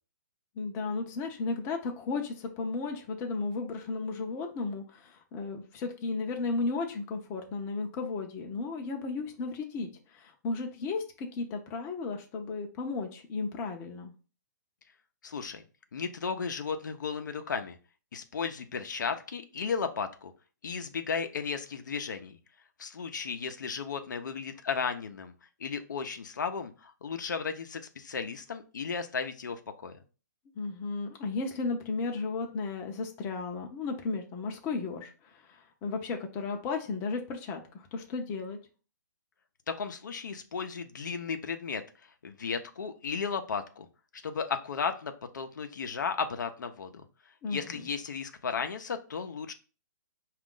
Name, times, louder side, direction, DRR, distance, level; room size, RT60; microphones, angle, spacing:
voice 1, 0.6-14.1 30.6-38.6 47.4-47.9, left 4 dB, 20° left, 3 dB, 0.6 m, -34 dB
voice 2, 15.2-15.6 15.9-17.8 18.1-20.3 20.6-22.4 22.8-25.3 25.6-30.0 39.7-41.8 42.2-43.9 44.2-47.0 47.5-49.5, left 5 dB, 75° left, 7 dB, 0.6 m, -34 dB
4.9 x 2.4 x 3.7 m, 0.36 s
hypercardioid pair, 155°, 10 cm